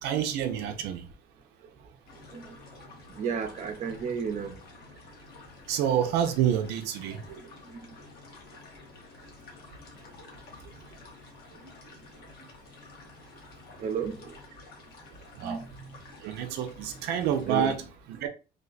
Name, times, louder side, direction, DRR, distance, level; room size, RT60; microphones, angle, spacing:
voice 1, 0.0-1.0 5.7-7.4 15.4-15.6 16.2-17.8 18.2-18.3, right 9 dB, 85° right, 0.5 m, -28 dB
sound 1, 2.1-17.7, left 4 dB, 65° left, 1.2 m, -51 dB
voice 2, 2.3-2.6 3.1-4.6 7.1-7.2 11.5-11.7 13.8-14.4 15.4-15.7 16.9-17.0 17.4-17.8 18.1-18.2, right 6 dB, 45° right, 0.6 m, -33 dB
3.2 x 2.2 x 3.8 m
cardioid pair, 110°, 17 cm